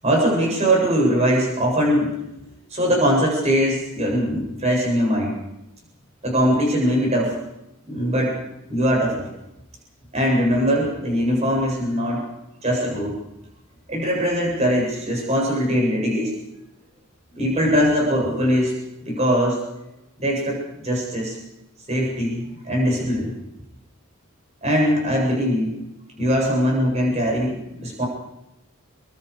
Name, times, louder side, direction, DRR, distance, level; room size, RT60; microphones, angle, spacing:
voice 1, 0.0-2.1 2.7-5.3 6.2-7.3 7.9-8.4 8.7-9.3 10.1-12.2 12.6-13.2 13.9-16.3 17.3-18.7 19.0-19.6 20.2-21.4 21.9-23.3 24.6-25.7 26.2-28.0, equal, 30° right, -2 dB, 7.9 m, -21 dB
29.5 x 23.5 x 5.1 m, 0.87 s
head